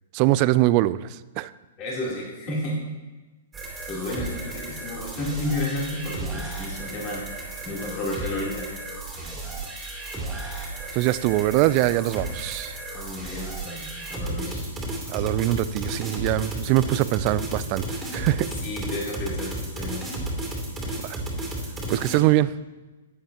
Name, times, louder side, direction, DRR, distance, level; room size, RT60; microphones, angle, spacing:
voice 1, 0.1-1.5 10.9-12.8 15.1-17.8 18.1-18.5 21.0-21.2 21.9-22.5, right 16 dB, 40° right, 17 dB, 0.3 m, -22 dB
voice 2, 1.8-2.8 3.9-7.3 7.6-8.7 12.9-14.7 18.6-20.2, left 1 dB, 35° left, -5 dB, 3.3 m, -32 dB
sound 1, 3.5-22.2, right 1 dB, 10° right, 2.8 m, -33 dB
11.5 x 8.6 x 2.9 m, 1.2 s
hypercardioid pair, 130°, 0 cm